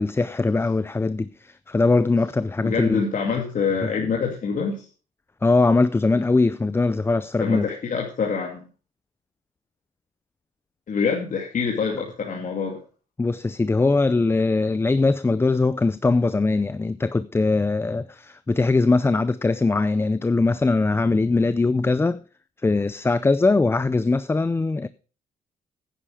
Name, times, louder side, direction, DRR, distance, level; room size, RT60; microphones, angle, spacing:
voice 1, 0.0-3.0 5.4-7.7 13.2-22.2 22.6-24.9, left 3 dB, 15° left, 0.4 m, -21 dB
voice 2, 2.6-4.9 7.4-8.7 10.9-12.8, left 5 dB, 55° left, 2.5 m, -25 dB
10.0 x 9.9 x 4.9 m
cardioid pair, 95°, 17 cm